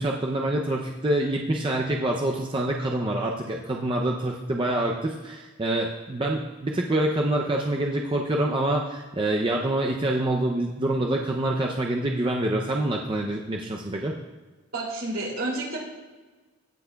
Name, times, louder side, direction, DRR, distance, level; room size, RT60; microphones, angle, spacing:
voice 1, 0.0-14.1, right 1 dB, 25° right, 0 dB, 0.5 m, -26 dB
voice 2, 14.7-15.8, right 2 dB, 70° right, -3 dB, 2.7 m, -30 dB
17.5 x 5.9 x 2.3 m, 1.3 s
head